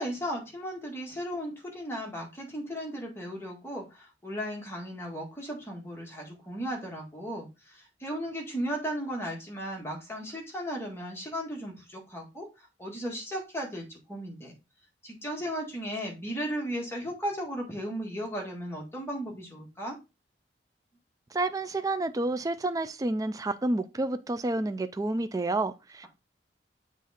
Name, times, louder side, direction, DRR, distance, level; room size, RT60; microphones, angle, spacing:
voice 1, 0.0-12.5 12.8-14.5 15.0-20.0, equal, 15° left, 1.7 m, -36 dB
voice 2, 21.3-26.1, right 2 dB, 20° right, 0.4 m, -29 dB
7.4 x 3.6 x 4.2 m
head